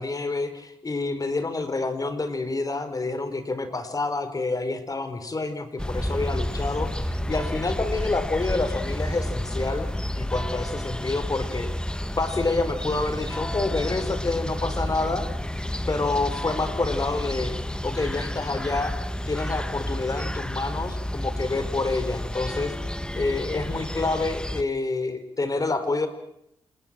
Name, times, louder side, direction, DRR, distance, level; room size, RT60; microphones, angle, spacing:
voice 1, 0.0-9.9 10.1-11.7 12.2-15.2 15.9-17.6 17.8-18.9 19.3-22.7 23.1-26.1, left 3 dB, 35° left, 10 dB, 4.7 m, -28 dB
sound 1, 5.8-24.6, left 1 dB, 10° left, 1.6 m, -30 dB
28.5 x 20.0 x 7.7 m, 0.78 s
supercardioid pair, 55°, 11 cm